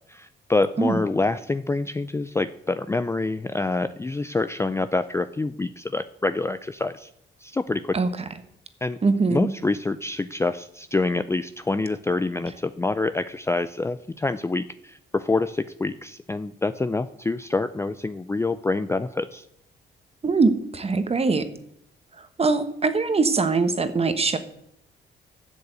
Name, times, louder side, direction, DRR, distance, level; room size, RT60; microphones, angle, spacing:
voice 1, 0.1-7.1 7.4-8.0 8.8-9.0 9.3-19.5, left 3 dB, 15° left, 12 dB, 0.4 m, -26 dB
voice 2, 9.0-9.5 20.2-21.5 22.2-24.4, right 4 dB, 30° right, 10 dB, 1.3 m, -22 dB
12.0 x 6.9 x 8.2 m, 0.75 s
cardioid pair, 90°, 20 cm